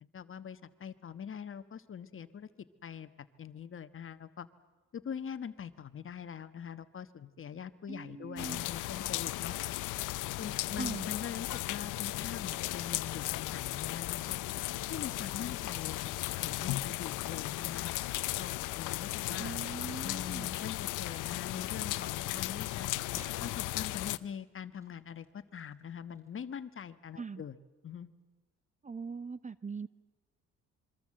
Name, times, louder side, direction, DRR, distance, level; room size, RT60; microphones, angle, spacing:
voice 1, 0.0-2.5 2.8-3.1 3.4-4.5 4.9-9.5 10.4-14.4 14.9-17.9 18.4-19.6 20.0-22.9 23.4-27.6 27.8-28.1, left 8 dB, 45° left, 12 dB, 1.3 m, -43 dB
voice 2, 7.9-8.6 10.8-11.1 19.4-20.5 27.2-27.4 28.8-29.9, right 4 dB, 25° right, 16 dB, 0.8 m, -41 dB
sound 1, 8.4-24.2, left 17 dB, 90° left, 0.7 m, -36 dB
sound 2, 23.0-26.3, left 1 dB, 10° right, 6.1 m, -61 dB
26.5 x 23.5 x 7.7 m, 1.2 s
cardioid pair, 90°, 30 cm